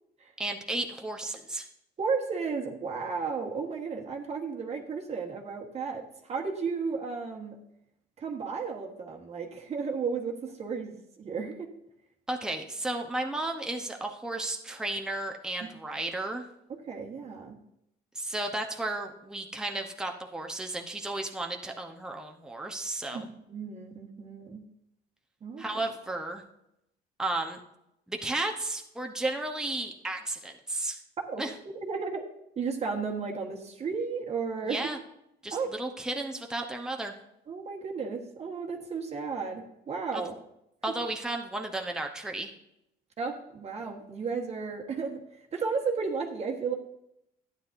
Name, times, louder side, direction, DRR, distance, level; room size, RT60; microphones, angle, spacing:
voice 1, 0.4-1.7 12.3-16.4 18.1-23.3 25.6-26.4 27.2-27.6 28.1-31.0 31.4-31.5 34.7-35.0 35.4-37.2 40.1-40.2 40.8-42.5, right 2 dB, 5° right, 2 dB, 0.9 m, -33 dB
voice 2, 2.0-7.6 8.2-11.7 16.7-17.6 23.1-24.6 25.4-25.6 31.3-31.4 31.8-32.2 32.6-34.9 35.5-35.7 37.5-40.3 43.2-45.2 45.5-46.8, right 5 dB, 40° right, 2 dB, 1.4 m, -33 dB
12.0 x 9.6 x 2.6 m, 0.82 s
cardioid pair, 110°, 17 cm